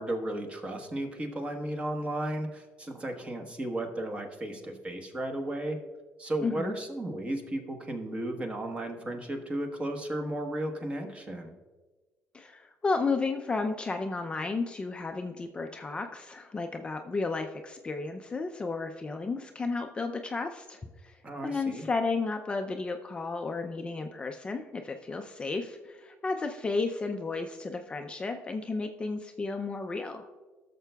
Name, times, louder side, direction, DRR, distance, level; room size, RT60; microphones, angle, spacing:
voice 1, 0.0-5.8 6.2-11.5 21.2-21.9, right 1 dB, 25° right, 4 dB, 1.1 m, -34 dB
voice 2, 6.4-6.7 12.3-21.2 21.4-30.3, left 3 dB, 20° left, 5 dB, 0.4 m, -33 dB
15.5 x 6.7 x 2.3 m, 1.3 s
cardioid pair, 125°, 5 cm